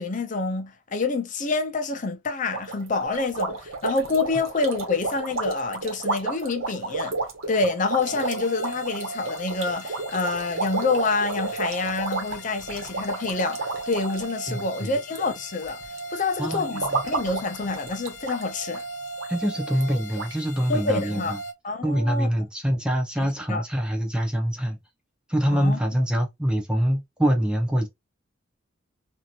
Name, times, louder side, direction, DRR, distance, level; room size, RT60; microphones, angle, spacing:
voice 1, 0.0-7.2 7.5-15.8 16.1-18.8 20.7-21.3 21.6-22.3 23.2-23.6 25.5-25.8, left 3 dB, 40° left, 0.6 m, -27 dB
sound 1, 2.5-15.3 15.6-16.0 16.5-18.4 18.7-18.8 19.2-19.3 19.8-19.9 20.2-20.3, right 3 dB, 90° right, 1.0 m, -31 dB
sound 2, 8.0-21.5, right 2 dB, 75° left, 0.8 m, -38 dB
voice 2, 14.5-14.9 16.4-17.0 19.3-21.4 21.8-24.8 25.3-27.9, equal, 5° right, 0.5 m, -25 dB
2.9 x 2.7 x 2.4 m
head